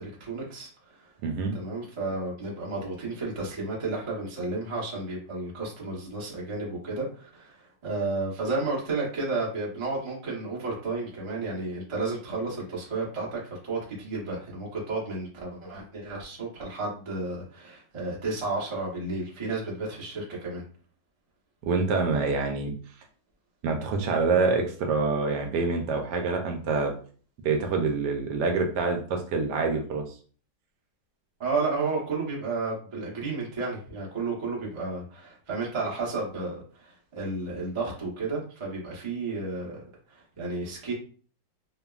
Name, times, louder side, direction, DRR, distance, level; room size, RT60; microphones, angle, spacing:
voice 1, 0.0-1.1 1.5-20.6 31.4-39.8 40.1-40.9, right 3 dB, 40° right, -4 dB, 0.4 m, -32 dB
voice 2, 1.2-1.6 21.6-22.7 23.6-26.9 27.4-30.0, right 4 dB, 75° right, 3 dB, 1.1 m, -26 dB
3.2 x 2.2 x 2.3 m, 0.42 s
omnidirectional pair, 1.9 m